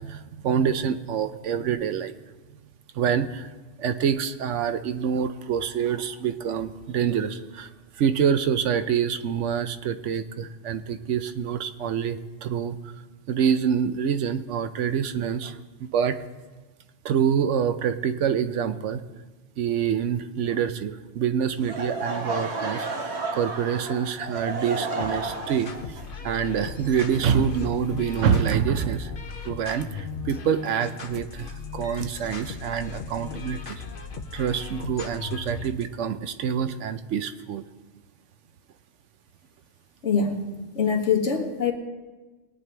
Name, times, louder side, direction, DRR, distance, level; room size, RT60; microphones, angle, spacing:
voice 1, 0.0-2.1 2.9-3.5 3.8-7.7 8.0-12.8 13.3-16.2 17.0-19.0 19.6-26.0 26.2-29.1 29.4-33.8 34.3-37.6, right 7 dB, 80° right, 10 dB, 1.0 m, -26 dB
Laughter / Crowd, 21.6-27.5, right 3 dB, 65° right, 1.5 m, -32 dB
sound 1, 25.0-35.8, left 5 dB, 50° left, 1.1 m, -38 dB
voice 2, 40.0-41.7, left 6 dB, 75° left, 1 dB, 1.8 m, -24 dB
20.5 x 9.0 x 3.4 m, 1.2 s
omnidirectional pair, 1.2 m